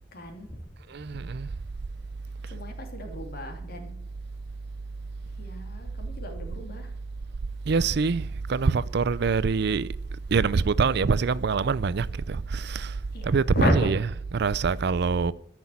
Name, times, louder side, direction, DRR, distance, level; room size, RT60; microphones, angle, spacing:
voice 1, 0.1-0.7 2.5-4.0 5.2-6.9 13.1-13.9, equal, 55° left, 2.9 m, -31 dB
voice 2, 0.9-1.5 7.7-9.9 10.3-12.9 13.2-15.3, right 5 dB, 60° right, 0.5 m, -25 dB
13.5 x 6.1 x 8.5 m
head